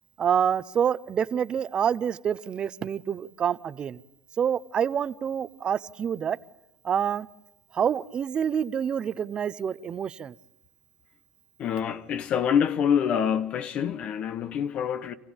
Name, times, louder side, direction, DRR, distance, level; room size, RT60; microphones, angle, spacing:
voice 1, 0.2-4.0 4.4-6.4 6.8-7.3 7.7-10.3, right 8 dB, 40° right, 0.9 m, -27 dB
voice 2, 11.6-15.1, left 8 dB, 50° left, 1.1 m, -26 dB
28.0 x 15.5 x 8.9 m
supercardioid pair, 100°, 3 cm